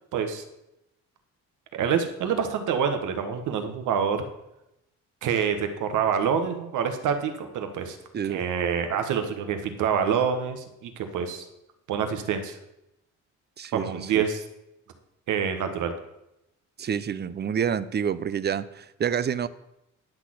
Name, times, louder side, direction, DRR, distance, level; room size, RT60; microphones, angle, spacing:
voice 1, 0.1-0.4 1.7-4.2 5.2-8.0 8.2-11.5 11.9-12.6 13.7-14.4 15.3-15.9, right 7 dB, 80° right, 7 dB, 1.3 m, -26 dB
voice 2, 13.6-14.2 16.8-19.5, right 8 dB, 35° right, 16 dB, 0.5 m, -28 dB
10.5 x 4.2 x 7.7 m, 0.88 s
cardioid pair, 90°, 30 cm